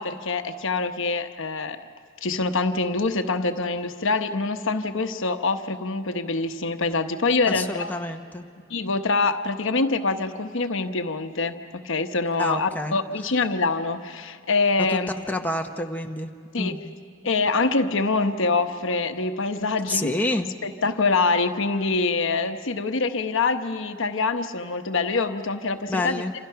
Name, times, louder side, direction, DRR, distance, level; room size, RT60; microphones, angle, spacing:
voice 1, 0.0-1.9 2.2-7.9 8.7-15.1 16.5-16.7 17.2-20.1 20.6-26.2, left 3 dB, 65° left, 7 dB, 1.0 m, -25 dB
voice 2, 7.5-8.5 12.4-13.0 14.8-15.0 15.3-16.3 16.6-16.9 17.2-17.3 19.9-20.5 25.9-26.3, left 2 dB, 10° left, 3 dB, 0.9 m, -28 dB
28.0 x 27.0 x 5.8 m, 2.2 s
head